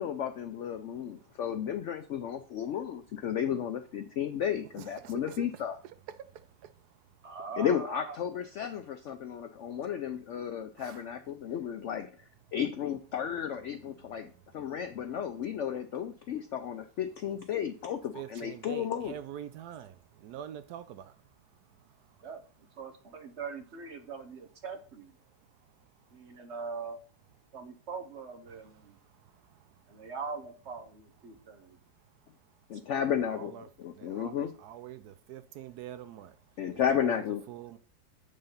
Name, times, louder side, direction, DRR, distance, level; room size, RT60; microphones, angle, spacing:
voice 1, 0.0-5.8 7.6-12.1 12.5-19.1 32.7-33.5 33.8-34.5 36.6-37.4, left 9 dB, 90° left, 0.6 m, -33 dB
voice 2, 4.8-7.4 10.8-11.1 14.1-14.7 18.1-22.2 25.8-26.1 28.5-30.1 31.3-31.5 33.0-36.4 36.7-37.8, right 10 dB, 75° right, 1.0 m, -47 dB
voice 3, 7.2-8.2 22.2-25.2 26.1-27.0 27.5-29.0 29.9-31.8, right 5 dB, 45° right, 1.1 m, -42 dB
8.1 x 3.8 x 5.5 m
omnidirectional pair, 1.9 m